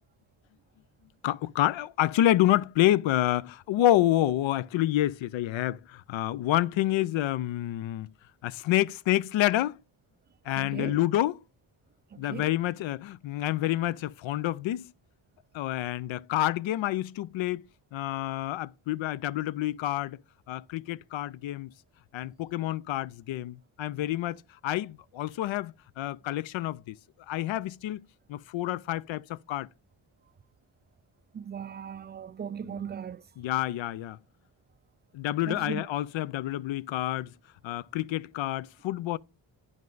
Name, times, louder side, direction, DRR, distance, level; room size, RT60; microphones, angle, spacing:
voice 1, 1.2-8.1 8.4-9.8 10.5-11.4 12.2-14.9 15.5-17.6 17.9-20.2 20.5-21.7 22.1-27.0 27.3-28.0 28.3-29.7 33.4-34.2 35.1-37.3 37.6-39.2, left 14 dB, 75° left, 0.5 m, -28 dB
voice 2, 10.6-11.0 12.1-12.5 31.3-33.2 35.5-35.8, right 7 dB, 25° right, 0.3 m, -38 dB
9.4 x 5.3 x 3.9 m
cardioid pair, 65°, 48 cm